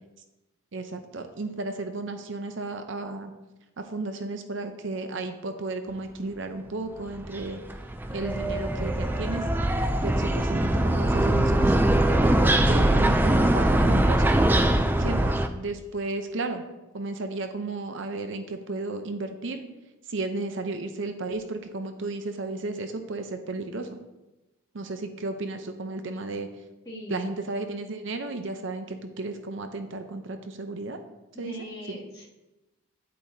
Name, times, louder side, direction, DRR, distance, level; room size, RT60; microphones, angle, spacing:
voice 1, 0.7-3.3 3.8-7.6 8.1-9.5 10.0-11.8 12.1-14.4 15.0-16.6 16.9-19.6 20.1-24.0 24.7-26.5 27.1-31.0 31.4-31.6 31.9-32.0, right 3 dB, 60° right, 7 dB, 0.6 m, -33 dB
sound 1, 7.1-15.5, right 1 dB, 10° right, 0.3 m, -22 dB
voice 2, 26.9-27.3 31.4-32.3, equal, 20° left, -7 dB, 2.3 m, -40 dB
9.6 x 8.5 x 2.7 m, 1.0 s
head